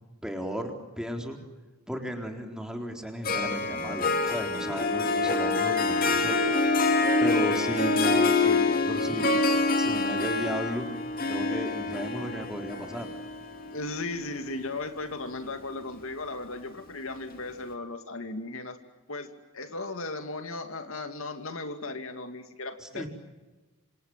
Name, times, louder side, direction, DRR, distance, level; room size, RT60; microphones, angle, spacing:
voice 1, 0.2-1.4 1.9-6.4 7.2-9.3 9.8-10.9 11.3-13.1 22.8-23.1, equal, 5° right, 3 dB, 4.0 m, -35 dB
Harp, 3.2-14.7, left 3 dB, 40° left, 2.6 m, -26 dB
voice 2, 13.7-18.8 19.1-23.1, left 2 dB, 70° left, 7 dB, 2.4 m, -36 dB
28.0 x 27.0 x 7.4 m, 1.1 s
head